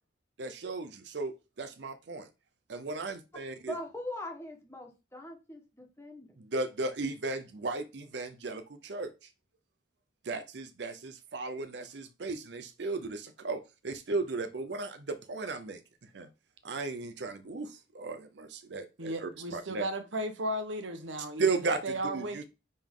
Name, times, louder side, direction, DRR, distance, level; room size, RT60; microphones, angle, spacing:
voice 1, 0.4-2.3 2.7-3.8 6.4-9.3 10.2-16.3 16.6-19.8 21.4-22.5, right 3 dB, 65° right, 0.6 m, -35 dB
voice 2, 3.7-6.3, left 1 dB, 15° left, 1.5 m, -41 dB
voice 3, 19.0-22.5, right 1 dB, 80° right, 1.1 m, -35 dB
9.5 x 3.7 x 3.7 m
head